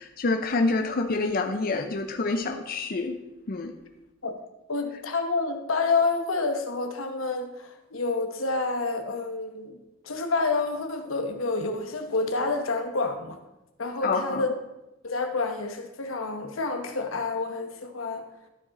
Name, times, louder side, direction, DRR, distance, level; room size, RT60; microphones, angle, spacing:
voice 1, 0.0-3.2 3.5-3.7 14.0-14.4, left 3 dB, 45° left, 5 dB, 0.5 m, -27 dB
voice 2, 4.7-9.8 10.0-13.4 13.8-14.5 15.0-18.2, left 3 dB, 90° left, 6 dB, 1.1 m, -28 dB
12.5 x 5.0 x 4.1 m, 0.97 s
head